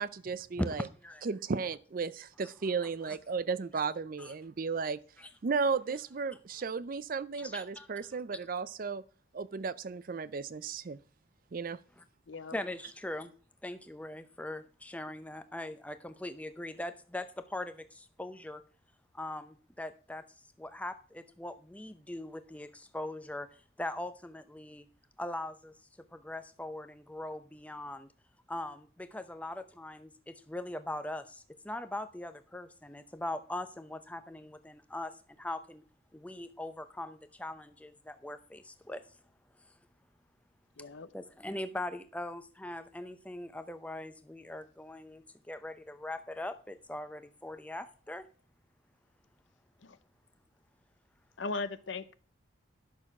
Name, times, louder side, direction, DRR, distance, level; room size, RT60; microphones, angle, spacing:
voice 1, 0.0-0.9 1.2-5.0 5.4-9.0 9.3-11.0 11.5-11.8, right 5 dB, 45° right, 0.4 m, -34 dB
voice 2, 0.6-1.2 3.1-3.2 4.2-4.3 5.2-5.3 7.4-7.9 12.0-12.1 12.5-13.3 13.6-18.6 19.1-20.2 20.6-23.5 23.8-24.9 25.2-25.7 26.1-28.1 28.5-35.8 36.1-39.1 41.1-48.3, left 1 dB, 5° left, 0.6 m, -41 dB
voice 3, 12.3-12.6 14.0-14.2 40.8-41.1 49.8-50.0 51.4-52.1, left 3 dB, 70° left, 0.7 m, -38 dB
11.0 x 6.4 x 5.8 m
head